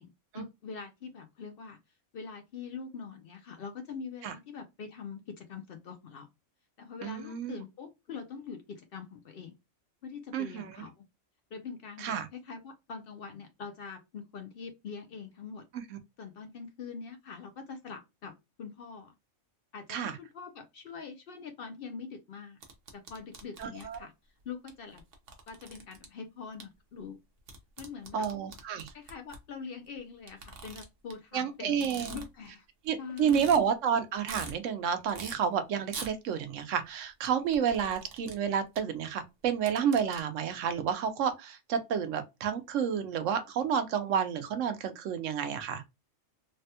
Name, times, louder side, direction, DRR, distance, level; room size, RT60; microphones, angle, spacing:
voice 1, 0.0-1.8 2.1-6.3 6.8-9.6 10.0-11.0 11.5-15.6 16.2-19.1 19.7-22.6 22.9-24.1 24.4-25.0 25.5-27.2 27.8-28.3 28.9-32.7 33.0-33.5, left 5 dB, 60° left, 0.6 m, -44 dB
voice 2, 7.0-7.6 10.3-10.7 12.0-12.3 19.9-20.2 23.6-24.0 28.1-28.9 31.3-32.2 32.9-45.8, right 7 dB, 85° right, 1.0 m, -30 dB
sound 1, 22.6-24.0 24.7-24.8 25.0-26.1 26.6-26.7 27.5-29.4 30.3-31.1 31.7-32.5 32.8-32.9 33.2-33.6 34.0-34.5 35.1-35.4 35.9-36.1 37.3-38.4 38.8-38.9 39.4-40.2, right 4 dB, 55° right, 0.9 m, -44 dB
3.3 x 2.1 x 2.7 m
omnidirectional pair, 1.3 m